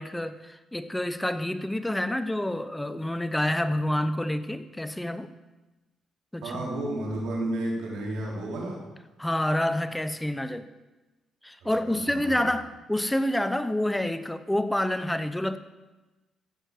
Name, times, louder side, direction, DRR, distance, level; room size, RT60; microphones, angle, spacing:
voice 1, 0.0-5.3 6.3-6.7 9.2-10.7 11.4-15.6, left 1 dB, 5° left, 11 dB, 0.8 m, -28 dB
voice 2, 6.4-8.8 11.6-12.5, right 1 dB, 85° right, -3 dB, 4.1 m, -32 dB
15.0 x 6.3 x 7.7 m, 1.1 s
cardioid pair, 90°, 0 cm